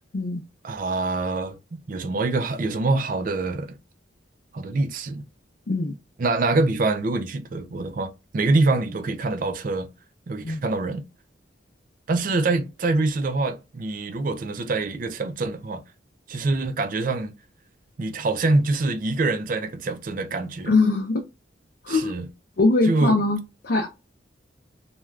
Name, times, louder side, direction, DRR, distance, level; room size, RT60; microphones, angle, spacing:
voice 1, 0.6-3.8 4.5-5.2 6.2-9.9 10.3-11.0 12.1-15.8 16.3-17.3 18.0-20.7 21.9-22.3 22.8-23.2, right 3 dB, 45° right, 0.4 m, -25 dB
voice 2, 20.7-21.2 21.8-22.1 22.6-23.9, left 3 dB, 55° left, 0.5 m, -22 dB
2.4 x 2.2 x 3.2 m
head